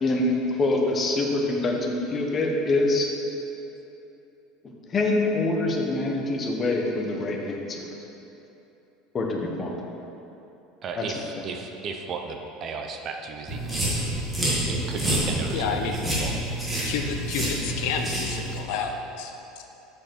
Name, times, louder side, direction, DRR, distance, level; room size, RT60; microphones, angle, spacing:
voice 1, 0.0-3.1 4.9-7.8 9.1-9.7 11.0-11.1, left 2 dB, 20° left, 0 dB, 0.9 m, -25 dB
voice 2, 10.8-13.8 14.5-16.9, right 4 dB, 30° right, 4 dB, 0.5 m, -36 dB
sound 1, 13.5-18.6, right 1 dB, 10° right, 1.8 m, -28 dB
voice 3, 15.5-16.1 16.8-19.6, left 6 dB, 65° left, 4 dB, 0.6 m, -30 dB
6.6 x 5.5 x 6.0 m, 3.0 s
cardioid pair, 160°, 0 cm